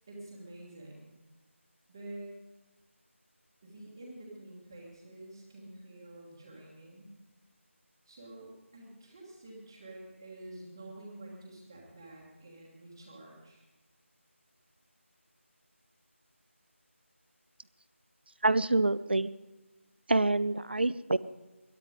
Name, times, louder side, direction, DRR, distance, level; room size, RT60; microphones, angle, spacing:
voice 1, 0.1-1.1 1.9-2.3 3.6-7.1 8.0-13.6, right 1 dB, 10° right, -7 dB, 1.4 m, -48 dB
voice 2, 18.4-19.3 20.1-21.2, right 2 dB, 50° right, 17 dB, 0.6 m, -26 dB
21.5 x 11.5 x 5.0 m, 1.1 s
figure-of-eight pair, 180°, 7 cm